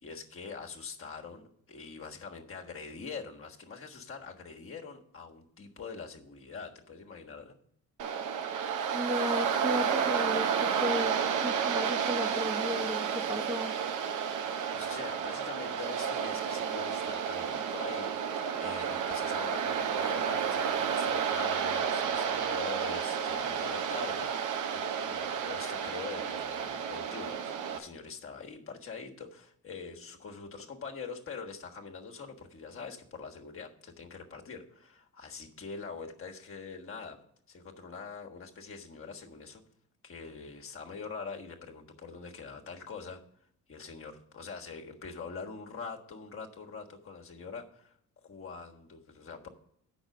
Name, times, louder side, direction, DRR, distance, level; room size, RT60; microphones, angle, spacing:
voice 1, 0.0-7.6 14.7-18.2 18.6-37.2 37.5-39.6 40.0-43.2 43.7-47.9 48.2-49.5, left 5 dB, 45° left, 1 dB, 1.5 m, -44 dB
Waves surf, 8.0-27.8, right 7 dB, 80° right, 0.9 m, -31 dB
voice 2, 8.9-13.7, equal, 15° right, 2 dB, 1.0 m, -34 dB
8.0 x 6.1 x 7.6 m, 0.70 s
cardioid pair, 90°, 30 cm